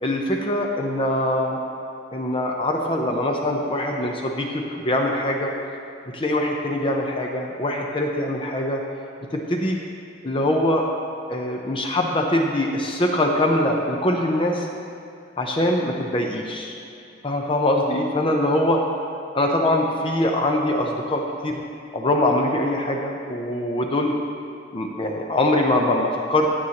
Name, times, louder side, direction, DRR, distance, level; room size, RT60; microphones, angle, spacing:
voice 1, 0.0-1.6 2.1-5.5 6.1-8.8 9.3-9.8 10.2-10.8 11.3-14.7 15.4-16.7 17.2-18.9 19.3-21.6 21.9-24.1 24.7-26.5, left 1 dB, 30° left, 1 dB, 0.6 m, -23 dB
16.0 x 7.8 x 2.9 m, 2.6 s
head